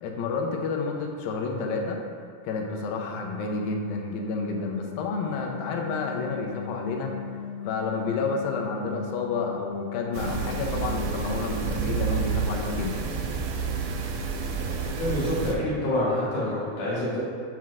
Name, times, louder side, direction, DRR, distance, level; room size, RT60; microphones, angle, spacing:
voice 1, 0.0-2.0 2.4-7.1 7.6-13.1, left 4 dB, 85° left, 2 dB, 2.5 m, -30 dB
sound 1, 2.8-12.9, left 8 dB, 55° right, 2.9 m, -39 dB
sound 2, 10.1-15.5, right 5 dB, 80° right, 2.0 m, -29 dB
voice 2, 15.0-17.2, left 1 dB, 65° left, -9 dB, 2.8 m, -27 dB
7.5 x 7.4 x 2.4 m, 2.1 s
omnidirectional pair, 4.1 m